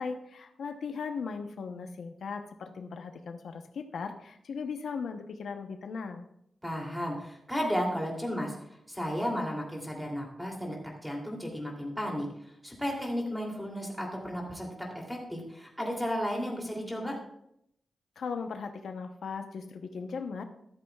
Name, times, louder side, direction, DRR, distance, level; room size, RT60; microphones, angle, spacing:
voice 1, 0.0-6.2 18.2-20.4, left 5 dB, 90° left, 6 dB, 0.9 m, -38 dB
voice 2, 6.6-8.6 8.9-10.8 11.0-12.2 12.6-14.7 15.1-17.2, equal, ahead, -1 dB, 2.9 m, -33 dB
13.5 x 13.0 x 2.4 m, 0.75 s
wide cardioid pair, 140°, 0 cm